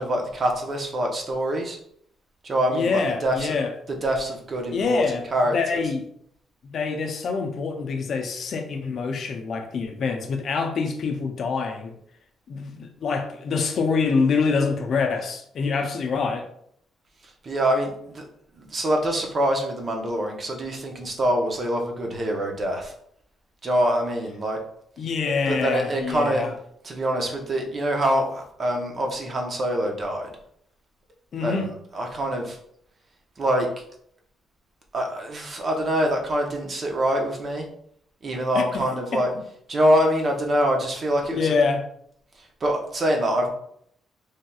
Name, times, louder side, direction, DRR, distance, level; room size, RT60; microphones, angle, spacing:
voice 1, 0.0-1.8 2.4-3.6 4.0-5.0 5.3-5.6 17.4-18.2 18.6-22.9 23.6-24.6 25.5-26.5 26.8-30.3 31.4-32.6 33.4-33.7 34.9-37.6 38.2-39.3 39.7-41.5 42.6-43.5, equal, 40° right, 0.7 m, -25 dB
voice 2, 2.7-3.7 4.7-6.0 6.6-11.9 12.5-16.5 25.0-26.5 31.3-31.7 38.5-38.9 39.1-39.2 41.3-41.8, left 4 dB, 60° left, 0.5 m, -25 dB
3.2 x 2.7 x 2.3 m
cardioid pair, 90°, 0 cm